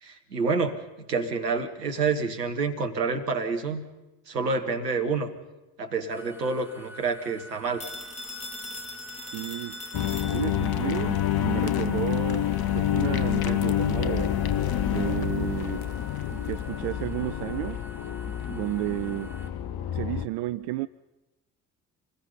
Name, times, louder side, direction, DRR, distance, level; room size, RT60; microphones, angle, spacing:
voice 1, 0.0-3.8 4.3-5.3 5.8-7.9, right 4 dB, 80° right, 5 dB, 1.4 m, -28 dB
sound 1, 6.1-19.5, equal, 5° right, 3.4 m, -47 dB
Telephone, 7.8-10.8, left 2 dB, 15° left, 3.0 m, -40 dB
voice 2, 9.3-9.8 10.3-14.3 14.9-16.0 16.3-17.8 18.5-19.3 19.9-20.9, right 17 dB, 55° right, 15 dB, 0.6 m, -32 dB
sound 2, 9.9-20.2, left 11 dB, 50° left, 1.2 m, -28 dB
27.0 x 20.0 x 5.5 m, 1.0 s
figure-of-eight pair, 45°, 48 cm